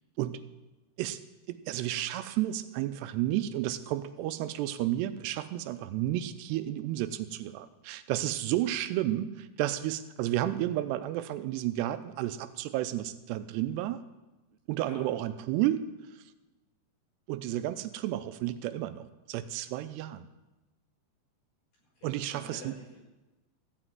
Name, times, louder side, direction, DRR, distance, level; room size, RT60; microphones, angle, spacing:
voice 1, 1.5-14.0 14.7-15.9 17.3-20.3 22.0-22.7, right 13 dB, 85° right, 12 dB, 2.7 m, -32 dB
voice 2, 22.0-23.0, equal, 55° left, -4 dB, 7.1 m, -48 dB
14.5 x 6.2 x 9.2 m, 1.1 s
omnidirectional pair, 4.8 m